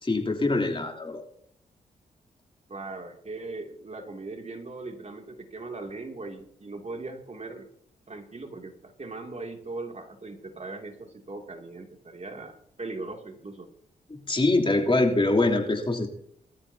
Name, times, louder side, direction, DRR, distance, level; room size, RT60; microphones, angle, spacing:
voice 1, 0.0-1.2 14.1-16.1, left 2 dB, 30° left, 2 dB, 3.2 m, -24 dB
voice 2, 2.7-7.7 8.1-13.7, right 3 dB, 40° right, 3 dB, 2.7 m, -39 dB
21.0 x 13.5 x 2.8 m, 0.67 s
hypercardioid pair, 40°, 18 cm